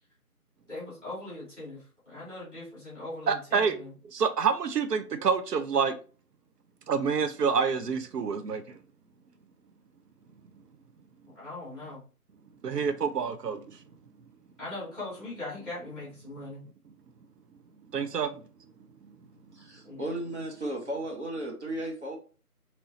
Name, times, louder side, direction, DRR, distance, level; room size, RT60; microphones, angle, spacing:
voice 1, 0.7-3.9 11.3-12.0 14.6-16.7 19.8-20.0, left 2 dB, 10° right, 1.1 m, -40 dB
voice 2, 3.3-3.8 4.1-6.0 6.9-8.8 12.6-13.6 17.9-18.4, right 6 dB, 85° right, 0.5 m, -27 dB
voice 3, 19.5-22.2, right 1 dB, 45° right, 0.8 m, -35 dB
3.0 x 3.0 x 2.7 m
figure-of-eight pair, 160°, 46 cm